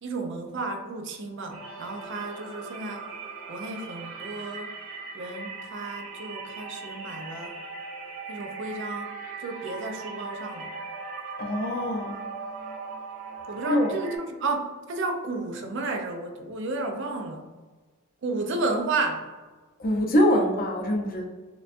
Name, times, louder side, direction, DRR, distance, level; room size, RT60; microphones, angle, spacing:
voice 1, 0.0-3.1 3.5-4.7 5.1-7.6 8.3-9.1 9.4-10.7 13.5-17.5 18.2-19.3, right 3 dB, 55° right, 4 dB, 0.5 m, -32 dB
sound 1, 1.5-14.2, right 4 dB, 80° right, 1.2 m, -39 dB
voice 2, 11.4-12.3 13.7-13.9 19.8-21.2, equal, 40° left, 1 dB, 0.6 m, -24 dB
6.6 x 2.3 x 2.5 m, 1.3 s
head